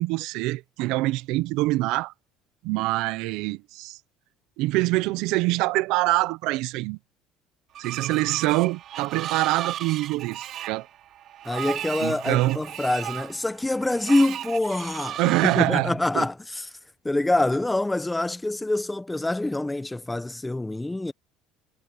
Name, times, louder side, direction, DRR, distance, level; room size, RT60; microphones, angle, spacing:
voice 1, 0.0-2.1 2.6-4.0 4.6-7.0 7.8-10.9 12.0-12.6 15.2-16.2, right 19 dB, 75° right, 1.0 m, -25 dB
Screech, 7.7-15.7, right 11 dB, 55° right, 3.9 m, -35 dB
voice 2, 11.4-16.7 17.0-21.1, left 2 dB, 10° left, 1.0 m, -25 dB
supercardioid pair, 90°, 0 cm